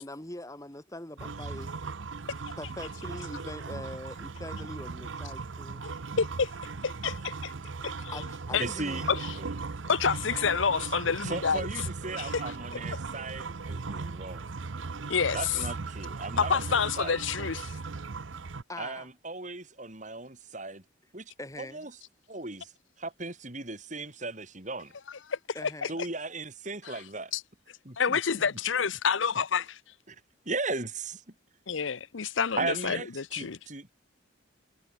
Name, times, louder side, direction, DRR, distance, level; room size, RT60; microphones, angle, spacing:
voice 1, 0.0-1.7 2.6-5.8 8.1-9.2 11.3-11.4 18.7-19.1 21.4-21.9 25.5-26.0, left 1 dB, 15° left, 2.2 m, -42 dB
sound 1, 1.2-18.6, right 4 dB, 80° right, 0.8 m, -38 dB
voice 2, 5.8-6.5 6.8-7.5 7.8-8.2 8.5-8.7 9.1-9.2 9.9-11.7 12.2-12.4 12.9-13.0 15.1-15.5 16.4-17.7 25.3-25.9 26.9-27.0 27.3-27.4 28.0-29.8 31.7-33.6, left 6 dB, 80° left, 0.8 m, -28 dB
voice 3, 8.6-9.0 9.4-9.6 11.2-14.5 15.3-17.2 18.8-20.8 21.1-21.9 22.3-22.7 23.0-24.9 25.9-27.3 27.9-28.2 30.1-30.2 30.5-31.2 32.6-33.9, right 3 dB, 40° right, 3.9 m, -37 dB
head